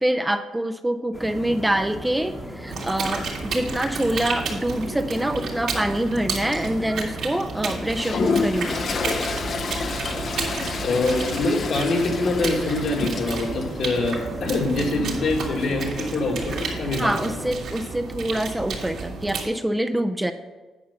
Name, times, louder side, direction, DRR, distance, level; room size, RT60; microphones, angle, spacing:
voice 1, 0.0-8.9 17.0-20.3, right 1 dB, 10° right, 8 dB, 0.4 m, -25 dB
sound 1, 1.1-17.5, left 1 dB, 10° left, 1.0 m, -36 dB
sound 2, 2.7-19.4, right 4 dB, 70° right, 2.2 m, -32 dB
Toilet flush, 7.9-13.7, left 4 dB, 50° left, 0.7 m, -28 dB
voice 2, 10.8-17.3, left 2 dB, 65° left, 0 dB, 1.9 m, -24 dB
9.5 x 5.5 x 5.6 m, 1.2 s
cardioid pair, 90°, 0 cm